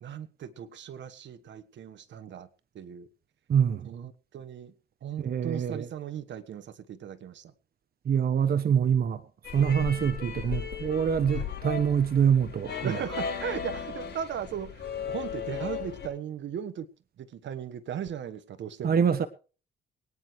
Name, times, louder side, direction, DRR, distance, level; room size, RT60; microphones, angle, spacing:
voice 1, 0.0-2.5 2.7-3.1 3.8-4.7 5.0-7.5 9.9-10.1 11.3-11.5 12.8-16.9 17.2-19.0, right 9 dB, 65° right, 1.4 m, -37 dB
voice 2, 3.5-3.9 5.2-5.9 8.0-9.2 9.5-13.0 18.8-19.3, right 7 dB, 50° right, 1.2 m, -25 dB
sound 1, 9.4-16.1, left 6 dB, 55° left, 7.6 m, -36 dB
24.0 x 9.7 x 3.2 m
cardioid pair, 90°, 20 cm